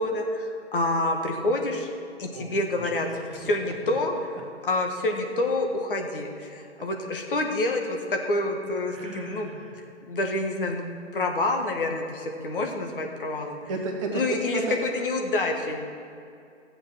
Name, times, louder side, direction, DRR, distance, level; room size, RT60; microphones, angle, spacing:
voice 1, 0.0-1.9 2.2-4.4 4.6-9.5 10.1-10.8 11.1-13.6 14.1-14.6 14.9-15.9, left 2 dB, 50° left, 3 dB, 1.5 m, -27 dB
voice 2, 2.3-3.0 3.3-4.0 8.9-9.8 13.7-14.8, right 3 dB, 25° right, 1 dB, 1.4 m, -34 dB
14.0 x 7.7 x 6.0 m, 2.5 s
figure-of-eight pair, 150°, 36 cm